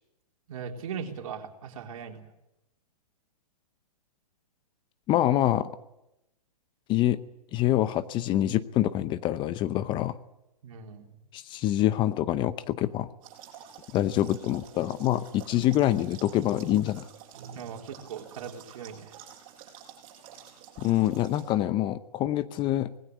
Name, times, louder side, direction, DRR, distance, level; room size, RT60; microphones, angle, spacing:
voice 1, 0.5-2.2 10.6-11.1 17.4-19.2, right 7 dB, 60° right, 2 dB, 3.8 m, -39 dB
voice 2, 5.1-5.7 6.9-7.2 7.5-10.2 11.3-13.1 13.9-17.1 20.8-22.9, left 13 dB, 25° left, 14 dB, 0.7 m, -25 dB
sound 1, 13.2-21.5, right 9 dB, 35° right, 6.7 m, -49 dB
20.0 x 16.0 x 9.7 m, 0.90 s
hypercardioid pair, 130°, 20 cm